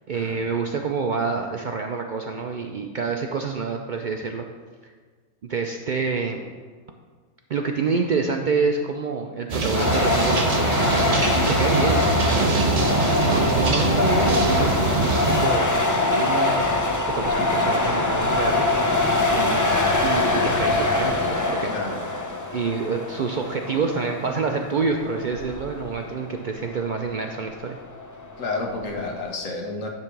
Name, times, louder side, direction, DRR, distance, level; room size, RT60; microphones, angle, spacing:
voice 1, 0.1-4.5 4.8-4.9 5.5-6.5 7.5-12.7 13.2-14.7 15.3-16.9 17.1-18.7 19.3-21.7 22.5-27.8, right 4 dB, 65° right, 3 dB, 0.4 m, -27 dB
sound 1, 9.5-15.5, right 3 dB, 35° right, 0.7 m, -23 dB
sound 2, 9.7-29.3, left 2 dB, 30° left, 0.3 m, -24 dB
voice 2, 21.6-22.0 28.4-29.9, left 3 dB, 75° left, 1 dB, 1.5 m, -30 dB
10.5 x 3.6 x 5.8 m, 1.6 s
omnidirectional pair, 1.4 m